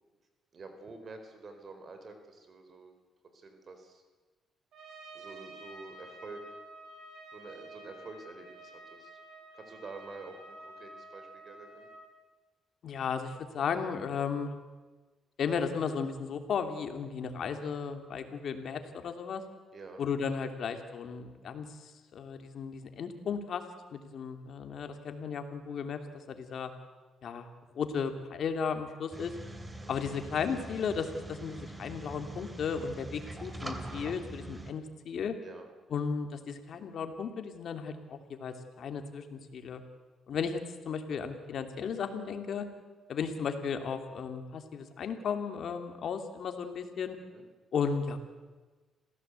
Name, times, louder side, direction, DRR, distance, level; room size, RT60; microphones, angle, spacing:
voice 1, 0.5-2.9 3.3-4.0 5.1-6.6 7.3-9.1 9.5-11.9 19.7-20.0 29.6-29.9 35.4-35.7 47.2-47.4, right 3 dB, 45° right, 6 dB, 4.2 m, -48 dB
Trumpet, 4.7-12.1, right 1 dB, 70° right, 5.7 m, -50 dB
voice 2, 12.8-14.5 15.4-19.4 20.0-23.6 23.9-26.0 26.3-26.7 27.2-27.5 27.7-29.3 29.9-35.3 35.9-39.8 40.3-42.7 43.1-47.2 47.7-48.2, left 6 dB, 60° left, 7 dB, 2.8 m, -35 dB
sound 1, 29.1-34.7, right 2 dB, 15° right, 2.8 m, -43 dB
27.0 x 16.5 x 8.3 m, 1.3 s
cardioid pair, 90°, 0 cm